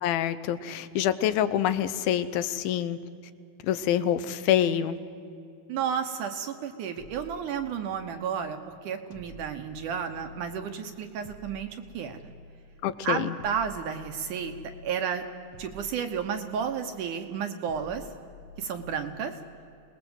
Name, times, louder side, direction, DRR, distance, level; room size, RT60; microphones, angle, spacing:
voice 1, 0.0-3.0 3.6-5.0 12.8-13.3, left 10 dB, 80° left, 12 dB, 2.6 m, -26 dB
voice 2, 5.7-11.7 11.9-12.3 13.0-14.5 14.8-15.3 15.6-18.1 18.6-19.4, right 7 dB, 70° right, 7 dB, 2.2 m, -32 dB
sound 1, 7.0-8.3 9.1-10.7 11.2-12.7 13.4-15.0 15.5-16.9 17.7-19.3, left 2 dB, 60° left, 2.2 m, -49 dB
26.0 x 19.5 x 8.0 m, 2.6 s
omnidirectional pair, 4.3 m